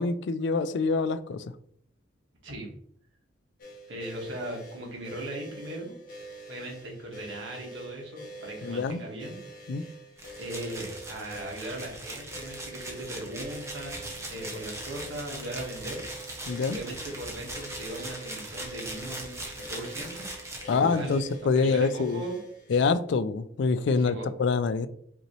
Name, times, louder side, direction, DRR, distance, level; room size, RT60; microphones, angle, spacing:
voice 1, 0.0-1.5 8.6-9.0 9.7-9.8 16.5-16.8 20.7-22.2 22.7-24.9, left 4 dB, 60° left, 13 dB, 0.3 m, -26 dB
sound 1, 3.6-22.9, right 2 dB, 45° left, 1.2 m, -46 dB
voice 2, 3.9-5.9 6.5-9.4 10.4-16.0 16.7-20.3 20.6-22.4 23.9-24.3, right 1 dB, 70° right, 0 dB, 1.3 m, -38 dB
sound 2, 10.2-21.3, right 1 dB, 15° right, 0.7 m, -40 dB
5.3 x 3.0 x 3.0 m, 0.65 s
head